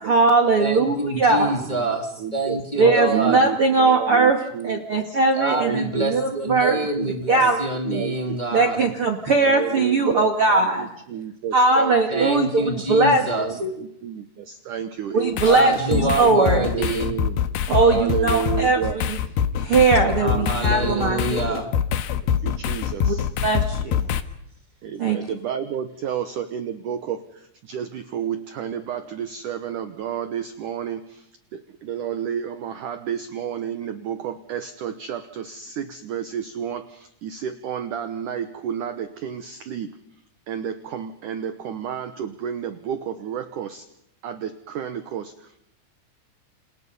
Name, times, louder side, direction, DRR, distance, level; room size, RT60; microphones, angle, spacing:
voice 1, 0.0-1.5 2.8-4.4 4.6-6.8 7.3-8.0 8.5-10.9 11.5-13.2 13.6-13.7 15.1-16.6 17.7-19.2 19.6-21.6 23.0-23.2 23.4-24.1 25.0-25.2, right 3 dB, 45° right, 6 dB, 2.0 m, -20 dB
voice 2, 0.6-3.5 5.3-8.9 12.1-13.5 15.4-17.1 20.2-21.7, right 1 dB, 10° left, 3 dB, 2.4 m, -26 dB
voice 3, 2.2-2.6 2.8-4.8 5.5-6.1 6.6-7.1 7.3-7.5 7.9-8.1 9.3-12.3 13.4-13.5 14.0-14.2 14.7-16.0 16.3-17.3 17.8-19.0 20.4-20.5 20.8-21.2 22.4-23.0 25.1-27.2 27.7-27.9 28.1-31.0 31.9-35.2 35.8-36.8 37.2-38.9 39.2-39.4 39.7-39.9 40.5-43.0 43.2-43.7 44.2-44.4 44.8-45.2, right 9 dB, 70° right, 10 dB, 2.1 m, -30 dB
sound 1, 15.4-24.2, left 8 dB, 70° left, 2.9 m, -24 dB
28.5 x 28.5 x 5.5 m, 0.75 s
omnidirectional pair, 5.0 m